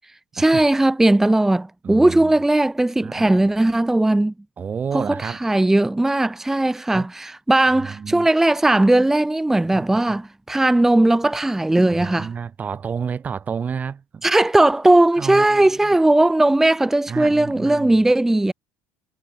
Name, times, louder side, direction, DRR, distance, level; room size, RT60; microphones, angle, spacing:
voice 1, 0.3-4.3 4.9-12.3 14.2-18.5, right 2 dB, 5° right, 0.7 m, -18 dB
voice 2, 1.8-2.3 3.0-3.3 4.6-5.4 6.9-7.1 7.8-8.3 9.7-10.2 11.9-14.2 15.2-16.0 17.1-18.0, right 6 dB, 30° right, 0.9 m, -30 dB
cardioid pair, 110°, 5 cm